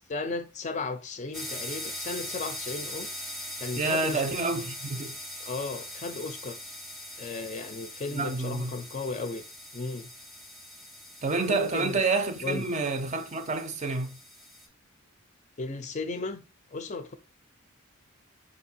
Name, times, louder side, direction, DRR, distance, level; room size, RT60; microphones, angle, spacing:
voice 1, 0.1-3.1 3.6-4.2 5.4-6.6 7.2-9.4 9.7-10.1 11.5-12.0 12.4-12.7 15.6-16.4 16.7-17.1, left 3 dB, 35° left, 0.4 m, -35 dB
sound 1, 1.3-14.7, left 1 dB, ahead, 0.7 m, -41 dB
voice 2, 3.8-5.2 8.1-8.8 11.2-14.2, right 3 dB, 35° right, 0.5 m, -28 dB
4.5 x 2.6 x 4.2 m
head